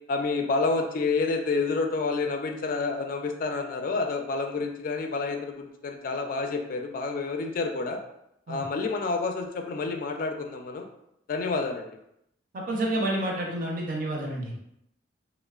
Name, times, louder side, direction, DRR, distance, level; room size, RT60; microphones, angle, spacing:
voice 1, 0.1-8.0 8.5-10.9 11.3-11.9, left 3 dB, 50° left, 4 dB, 0.3 m, -29 dB
voice 2, 12.5-14.6, right 1 dB, 50° right, -1 dB, 0.5 m, -29 dB
3.0 x 2.0 x 2.3 m, 0.78 s
head